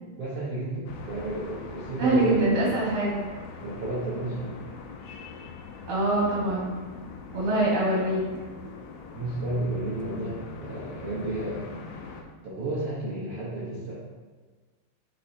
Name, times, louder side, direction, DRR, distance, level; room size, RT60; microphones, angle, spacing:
voice 1, 0.2-2.9 3.6-4.5 9.1-11.7 12.4-14.0, right 2 dB, 75° right, -7 dB, 1.3 m, -32 dB
sound 1, 0.9-12.2, left 5 dB, 90° left, 2.7 m, -42 dB
voice 2, 2.0-3.3 5.9-6.7 7.3-8.2, right 1 dB, 50° right, -6 dB, 1.6 m, -24 dB
9.4 x 4.3 x 2.8 m, 1.4 s
omnidirectional pair, 4.5 m